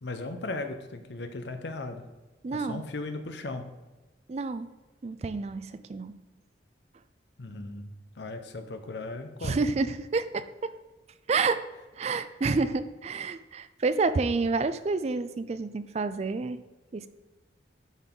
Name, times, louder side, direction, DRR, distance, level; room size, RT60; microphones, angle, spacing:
voice 1, 0.0-2.1 2.5-3.7 7.4-7.8 8.2-9.6, left 2 dB, 70° left, 7 dB, 0.7 m, -37 dB
voice 2, 2.4-2.8 4.3-4.7 5.0-6.1 9.4-10.8 11.3-11.7 12.0-16.6 16.9-17.1, right 4 dB, 35° right, 13 dB, 0.3 m, -29 dB
11.0 x 4.0 x 3.7 m, 1.1 s
head